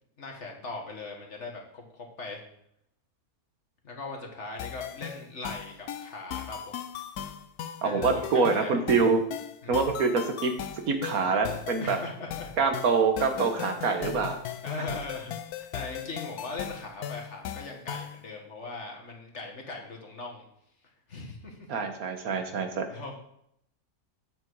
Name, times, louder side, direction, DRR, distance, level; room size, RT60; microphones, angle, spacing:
voice 1, 0.2-2.4 3.8-6.8 7.8-8.8 9.6-9.8 11.8-12.5 14.6-20.4 21.1-21.7 22.9-23.2, left 3 dB, 50° left, 1 dB, 1.9 m, -40 dB
sound 1, 4.6-18.2, left 10 dB, 85° left, 1.2 m, -38 dB
voice 2, 7.8-9.2 9.7-10.5 10.9-12.0 12.6-14.4 21.7-22.8, right 4 dB, 70° right, 6 dB, 1.6 m, -25 dB
8.8 x 7.8 x 4.7 m, 0.72 s
omnidirectional pair, 1.6 m